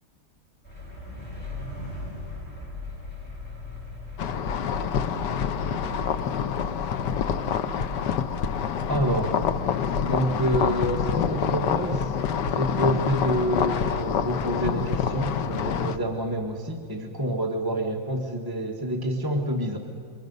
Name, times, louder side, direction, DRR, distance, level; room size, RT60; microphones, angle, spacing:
sound 1, 0.6-6.3, left 2 dB, 5° left, 7.6 m, -38 dB
sound 2, 4.2-16.0, left 7 dB, 65° left, 1.3 m, -27 dB
voice 1, 8.9-9.4 10.0-12.2 12.5-19.8, equal, 15° right, 1 dB, 0.9 m, -27 dB
27.0 x 24.5 x 5.4 m, 2.5 s
omnidirectional pair, 2.3 m